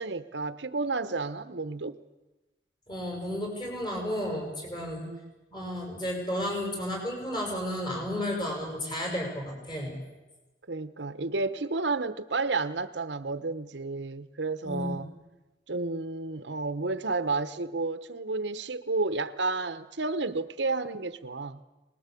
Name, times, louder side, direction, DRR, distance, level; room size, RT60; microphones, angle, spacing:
voice 1, 0.0-2.0 5.0-5.3 10.7-15.1 15.7-21.6, right 3 dB, 75° right, 1.1 m, -31 dB
voice 2, 2.9-5.0 5.5-10.0 14.6-15.0, equal, 25° left, 7.1 m, -32 dB
25.0 x 20.5 x 8.5 m
head